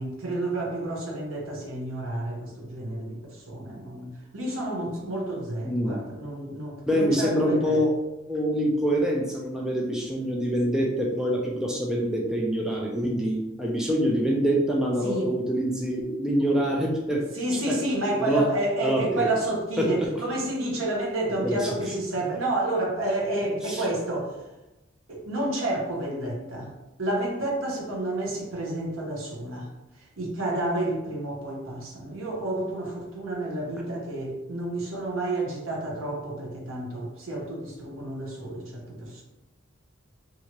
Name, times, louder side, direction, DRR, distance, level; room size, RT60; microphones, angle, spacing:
voice 1, 0.0-7.8 15.0-15.3 17.3-24.4 25.1-26.7 27.0-29.7 30.2-39.2, right 1 dB, 80° right, -2 dB, 0.8 m, -30 dB
voice 2, 5.6-6.0 6.8-7.9 8.3-17.2 18.2-18.4 18.8-19.3 19.8-20.1 21.4-21.7 23.7-23.8, equal, 5° right, -3 dB, 0.4 m, -25 dB
2.8 x 2.4 x 2.9 m, 0.98 s
head